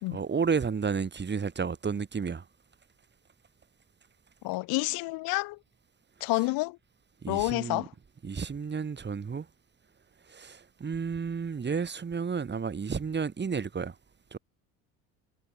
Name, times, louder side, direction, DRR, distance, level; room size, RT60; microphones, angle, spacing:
voice 1, 0.1-2.4 7.2-7.8 8.2-9.5 10.3-13.9 14.3-14.4, right 5 dB, 30° right, 6.6 m, -31 dB
voice 2, 4.4-5.6 6.2-6.8 7.3-7.9, left 22 dB, 80° left, 4.0 m, -29 dB
cardioid pair, 105°, 35 cm